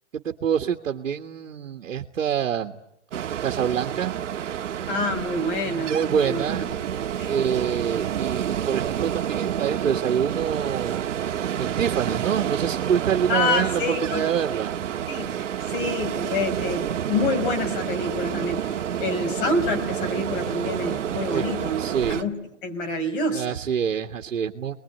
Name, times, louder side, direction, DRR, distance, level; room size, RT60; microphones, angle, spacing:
voice 1, 0.1-2.8 3.4-4.1 5.6-6.7 7.3-11.1 11.6-14.8 21.3-21.5 21.8-22.2 23.3-24.7, right 8 dB, 90° right, 4 dB, 1.8 m, -26 dB
Ocean, 3.1-22.2, right 9 dB, 70° right, 1.6 m, -29 dB
voice 2, 4.9-6.5 7.2-7.3 13.3-14.3 15.1-15.3 15.7-21.8 22.1-22.3 22.6-23.6, left 2 dB, 45° left, 5 dB, 5.3 m, -27 dB
28.5 x 21.0 x 9.4 m, 0.78 s
hypercardioid pair, 160°, 38 cm